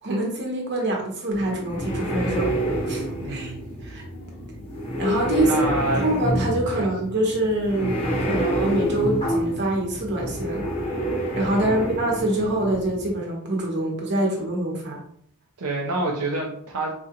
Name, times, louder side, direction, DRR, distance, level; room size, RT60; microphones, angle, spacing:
voice 1, 0.0-2.5 2.9-3.5 3.8-4.0 5.0-5.7 5.9-10.6 11.3-15.0, right 1 dB, 55° right, -1 dB, 1.0 m, -25 dB
sound 1, 1.3-13.1, equal, 25° left, 1.0 m, -28 dB
voice 2, 3.2-3.6 5.4-6.0 6.7-6.9 11.4-11.9 15.6-16.9, right 2 dB, 75° right, -2 dB, 0.6 m, -28 dB
4.2 x 2.4 x 2.9 m, 0.67 s
head